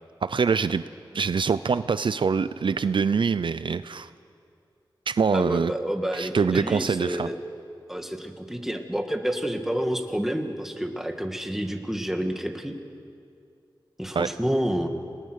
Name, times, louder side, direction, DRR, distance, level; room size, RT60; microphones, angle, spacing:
voice 1, 0.2-0.8 1.1-4.1 5.1-5.7 6.1-7.3 14.1-14.3, right 5 dB, 65° right, 13 dB, 0.5 m, -24 dB
voice 2, 5.3-7.3 7.9-12.7 14.0-14.9, equal, 5° right, 4 dB, 2.2 m, -29 dB
29.0 x 19.0 x 6.5 m, 2.4 s
cardioid pair, 55°, 9 cm